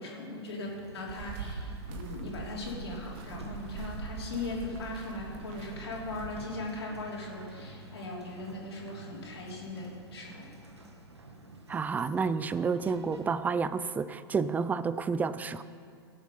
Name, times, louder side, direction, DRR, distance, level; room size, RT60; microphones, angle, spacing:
voice 1, 0.0-10.5, left 2 dB, 75° left, -3 dB, 3.2 m, -39 dB
Sliding door, 0.6-13.3, right 2 dB, 90° right, 1.3 m, -49 dB
sound 1, 1.1-6.7, right 5 dB, 45° right, 1.3 m, -43 dB
voice 2, 11.7-15.6, right 5 dB, 10° right, 15 dB, 0.4 m, -30 dB
17.0 x 7.3 x 5.3 m, 2.5 s
figure-of-eight pair, 100°, 14 cm